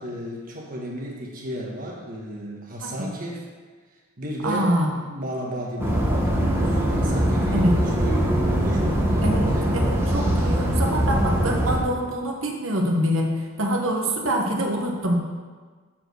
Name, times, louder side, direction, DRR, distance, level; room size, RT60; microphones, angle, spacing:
voice 1, 0.0-3.5 4.2-9.7, equal, 40° right, -2 dB, 1.3 m, -34 dB
voice 2, 4.4-4.9 7.5-7.7 9.2-13.3 13.6-15.2, equal, 65° right, 1 dB, 1.2 m, -25 dB
sound 1, 5.8-11.8, right 1 dB, 10° right, 1.0 m, -22 dB
7.5 x 4.7 x 6.2 m, 1.5 s
head